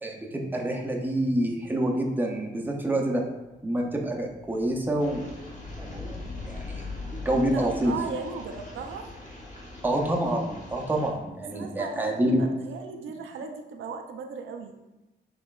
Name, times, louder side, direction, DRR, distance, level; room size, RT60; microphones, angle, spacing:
voice 1, 0.0-3.2 3.6-5.3 5.9-6.2 6.5-6.8 7.1-7.9 9.8-12.4, right 1 dB, 10° right, 0 dB, 0.6 m, -27 dB
sound 1, 3.5-10.4, left 3 dB, 70° left, 1.1 m, -42 dB
sound 2, 5.0-11.1, left 1 dB, 40° left, 1.3 m, -45 dB
voice 2, 7.3-9.1 11.5-14.7, right 5 dB, 90° right, 4 dB, 0.5 m, -37 dB
5.9 x 3.2 x 2.3 m, 1.0 s
wide cardioid pair, 120°, 20 cm